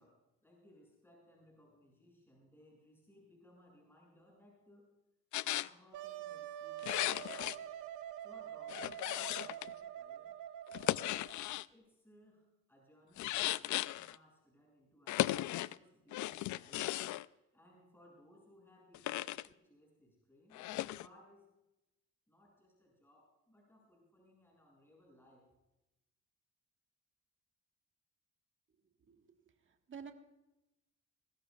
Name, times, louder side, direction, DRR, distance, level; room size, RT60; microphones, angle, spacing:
voice 1, 0.0-4.9 5.4-7.7 8.2-10.4 11.7-17.0 17.5-21.5 22.3-25.5, left 1 dB, 5° left, -2 dB, 6.5 m, -64 dB
sound 1, 5.3-5.7 6.8-7.6 8.7-9.7 10.7-11.7 13.2-14.2 15.1-15.8 16.1-17.2 18.9-19.5 20.5-21.1, left 15 dB, 75° left, 0.5 m, -36 dB
Wind instrument woodwind instrument, 5.9-11.4, right 11 dB, 90° right, 1.1 m, -46 dB
voice 2, 29.7-30.1, right 6 dB, 40° right, 5 dB, 1.6 m, -50 dB
21.5 x 16.5 x 2.4 m, 0.94 s
cardioid pair, 90°, 30 cm